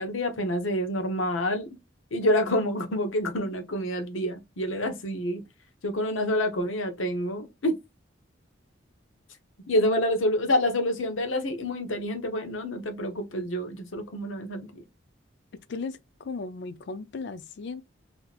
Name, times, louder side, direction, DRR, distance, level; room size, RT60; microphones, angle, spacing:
voice 1, 0.0-1.8 2.1-5.4 5.8-7.8 9.7-14.8, left 1 dB, 85° left, 0.9 m, -27 dB
voice 2, 15.7-17.8, left 4 dB, 60° left, 0.4 m, -36 dB
4.2 x 2.8 x 2.4 m
head